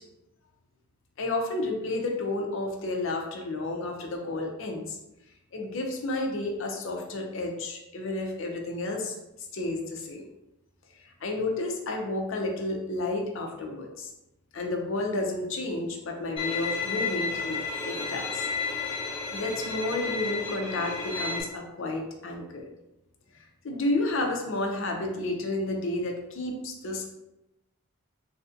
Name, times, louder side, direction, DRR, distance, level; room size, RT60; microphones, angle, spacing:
voice 1, 1.2-5.0 5.5-9.1 9.5-10.2 11.2-14.1 14.5-18.5 19.0-22.6 23.6-27.1, left 2 dB, 60° left, 1 dB, 0.5 m, -31 dB
Bowed string instrument, 16.4-21.4, left 4 dB, 25° left, 1.0 m, -32 dB
3.2 x 2.5 x 2.5 m, 0.92 s
head